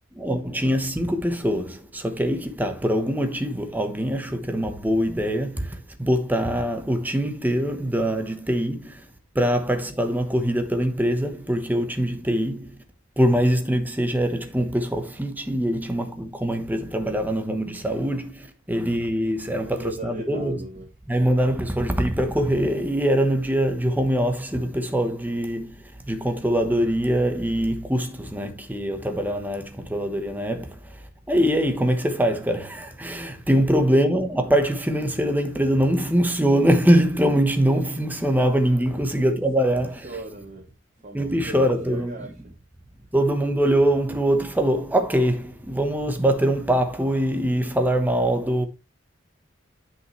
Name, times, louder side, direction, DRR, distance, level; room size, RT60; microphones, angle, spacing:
voice 1, 0.1-12.8 13.2-20.6 21.1-40.1 41.1-42.1 43.1-48.7, equal, 10° right, 1.1 m, -23 dB
voice 2, 19.5-20.9 33.2-33.6 38.7-39.7 40.0-42.4, right 2 dB, 35° right, 1.3 m, -39 dB
9.7 x 5.7 x 3.2 m
head